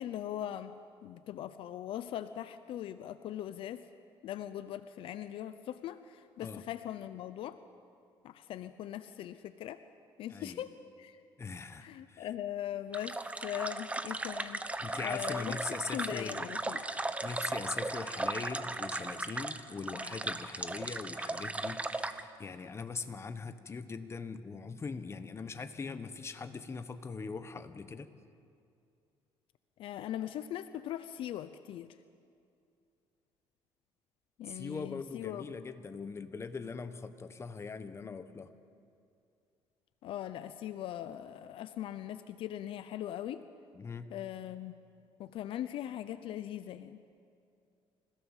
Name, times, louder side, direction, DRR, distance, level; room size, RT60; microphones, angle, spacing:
voice 1, 0.0-3.9 4.2-7.6 8.2-9.8 10.2-10.7 11.0-11.2 11.8-13.2 13.4-14.6 15.0-15.6 15.9-16.8 29.8-32.0 34.4-35.5 40.0-43.4 44.1-44.7 45.2-47.0, left 11 dB, 70° left, 12 dB, 0.7 m, -40 dB
voice 2, 11.4-12.3 14.8-16.5 17.2-28.1 34.5-38.5 43.7-44.2, left 4 dB, 30° left, 10 dB, 1.3 m, -41 dB
sound 1, 12.9-22.2, right 2 dB, 15° right, 1.0 m, -37 dB
27.0 x 16.5 x 7.4 m, 2.5 s
cardioid pair, 105°, 10 cm